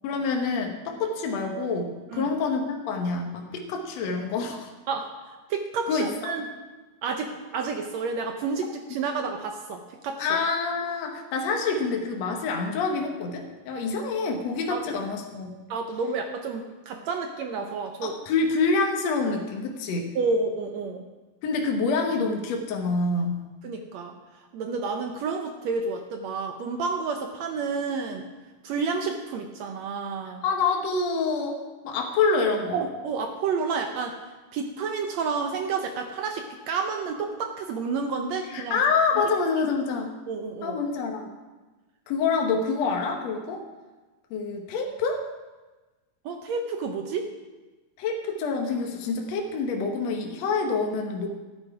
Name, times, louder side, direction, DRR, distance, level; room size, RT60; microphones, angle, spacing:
voice 1, 0.0-4.7 5.9-6.1 10.2-15.5 18.0-20.1 21.4-23.4 30.4-32.8 38.5-40.1 40.6-41.3 42.1-43.7 44.3-45.2 48.0-51.3, left 4 dB, 60° left, 2 dB, 2.1 m, -27 dB
voice 2, 4.9-6.5 7.0-10.3 14.7-14.9 15.7-18.2 20.2-21.0 23.6-24.1 24.5-28.3 28.6-30.4 32.7-34.2 34.5-38.8 40.3-40.8 46.3-47.2, right 4 dB, 70° right, 4 dB, 1.7 m, -30 dB
13.5 x 9.1 x 4.8 m, 1.2 s
omnidirectional pair, 3.8 m